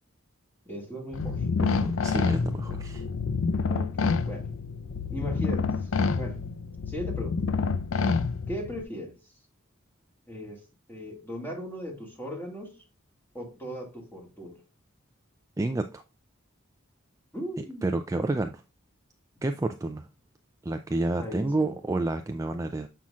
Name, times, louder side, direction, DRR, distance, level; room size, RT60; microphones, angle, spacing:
voice 1, 0.7-1.5 3.6-4.5 5.1-5.9 6.2-6.4 6.9-7.4 8.5-9.3 10.3-12.8 13.3-14.6 17.3-18.0 21.2-21.7, equal, 10° left, 1.9 m, -38 dB
sound 1, 1.1-8.8, left 4 dB, 85° left, 0.5 m, -28 dB
voice 2, 1.6-3.0 15.6-16.0 17.8-18.6 19.4-20.1 20.6-22.9, right 2 dB, 15° right, 0.3 m, -29 dB
7.3 x 5.7 x 2.4 m
head